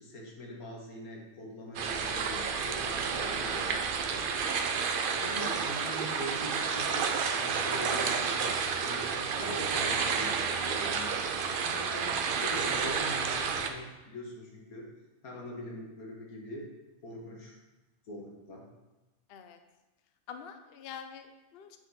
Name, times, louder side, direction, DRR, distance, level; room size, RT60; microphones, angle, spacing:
voice 1, 0.0-4.3 5.1-7.0 7.4-14.8 15.2-16.7 17.0-17.6 18.1-18.7, equal, 85° left, -1 dB, 1.8 m, -43 dB
sound 1, 1.7-13.7, right 5 dB, 75° right, 0.4 m, -30 dB
voice 2, 20.3-21.8, left 7 dB, 60° left, 7 dB, 0.6 m, -46 dB
8.1 x 4.0 x 4.2 m, 1.1 s
omnidirectional pair, 1.5 m